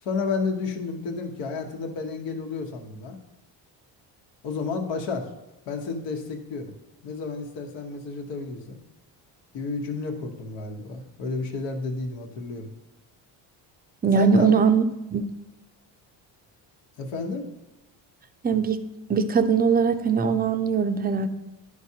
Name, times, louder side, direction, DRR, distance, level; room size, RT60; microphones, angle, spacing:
voice 1, 0.0-3.2 4.4-5.3 5.7-6.7 7.0-8.8 9.5-12.7 14.1-14.5 17.0-17.5, left 4 dB, 75° left, 3 dB, 1.2 m, -31 dB
voice 2, 14.0-14.8 15.1-15.3 18.4-18.8 19.1-21.3, right 6 dB, 20° right, 9 dB, 0.5 m, -21 dB
10.5 x 4.8 x 2.8 m, 1.0 s
cardioid pair, 100°, 43 cm